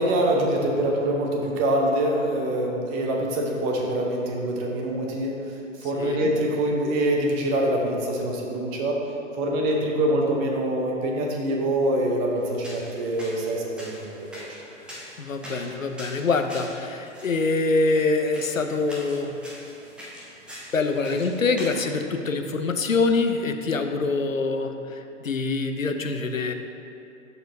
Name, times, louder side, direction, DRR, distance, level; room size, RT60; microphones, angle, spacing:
voice 1, 0.0-5.4 5.8-9.0 9.3-14.5, right 1 dB, 25° right, 0 dB, 0.9 m, -25 dB
voice 2, 6.0-6.3 15.2-19.4 20.7-26.5, left 3 dB, 90° left, 6 dB, 0.6 m, -25 dB
sound 1, 12.4-21.8, equal, 5° right, 0.6 m, -43 dB
12.0 x 4.3 x 2.7 m, 2.8 s
figure-of-eight pair, 115°, 39 cm